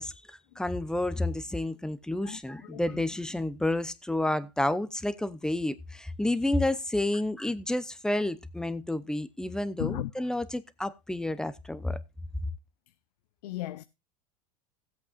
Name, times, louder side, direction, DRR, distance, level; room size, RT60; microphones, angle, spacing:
voice 1, 0.0-12.0, left 1 dB, 5° left, 0.7 m, -30 dB
voice 2, 2.2-3.0 9.8-10.1 13.4-13.8, left 15 dB, 80° left, 0.6 m, -36 dB
16.5 x 8.3 x 2.5 m
supercardioid pair, 120°, 20 cm